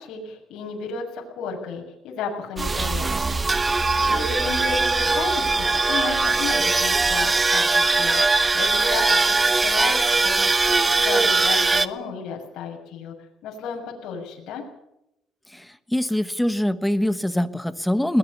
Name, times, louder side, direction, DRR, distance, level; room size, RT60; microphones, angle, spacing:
voice 1, 0.0-3.4 4.1-8.2 8.5-13.1 13.4-14.6, left 5 dB, 70° left, 0 dB, 6.8 m, -33 dB
sound 1, 2.6-11.9, right 3 dB, 20° right, 1.1 m, -21 dB
voice 2, 15.5-18.2, left 1 dB, 5° left, 13 dB, 1.3 m, -23 dB
21.5 x 19.5 x 6.9 m, 0.81 s
cardioid pair, 120°, 0 cm